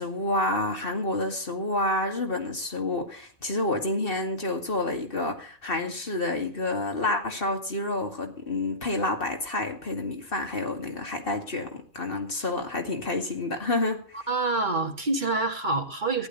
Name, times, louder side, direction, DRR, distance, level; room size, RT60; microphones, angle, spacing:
voice 1, 0.0-14.0, left 2 dB, 60° left, 2.6 m, -29 dB
voice 2, 14.3-16.3, right 3 dB, 45° right, 2.2 m, -26 dB
15.0 x 11.0 x 4.1 m
omnidirectional pair, 1.1 m